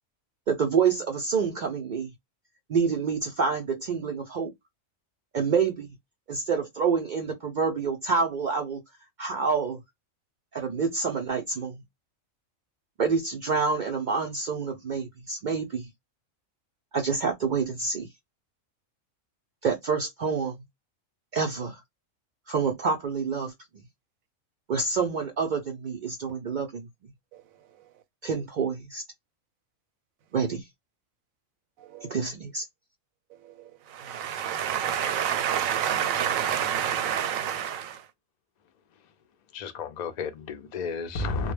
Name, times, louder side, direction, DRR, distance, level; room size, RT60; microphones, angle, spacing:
voice 1, 0.5-2.1 2.7-4.5 5.3-6.0 6.3-8.8 9.2-9.8 10.5-11.8 13.0-15.9 16.9-18.1 19.6-20.6 21.3-21.8 22.5-23.5 24.7-26.9 28.2-29.0 30.3-30.7 32.0-32.6, right 5 dB, 70° right, 0.4 m, -27 dB
voice 2, 31.8-32.2 33.4-38.1, right 9 dB, 90° right, 1.0 m, -29 dB
voice 3, 39.5-41.5, left 4 dB, 70° left, 0.4 m, -32 dB
2.2 x 2.1 x 3.2 m
omnidirectional pair, 1.4 m